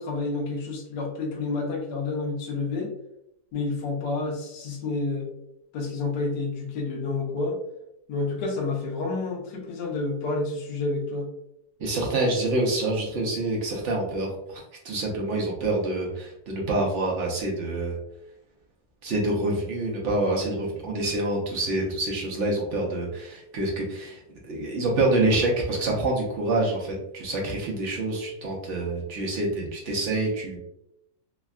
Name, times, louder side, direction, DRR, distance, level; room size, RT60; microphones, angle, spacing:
voice 1, 0.0-2.9 3.5-5.3 5.7-7.6 8.1-11.3, left 3 dB, 70° left, -1 dB, 1.3 m, -29 dB
voice 2, 11.8-18.0 19.0-24.2 24.5-30.6, right 2 dB, 70° right, -2 dB, 0.7 m, -27 dB
3.4 x 2.2 x 2.3 m, 0.81 s
omnidirectional pair, 2.0 m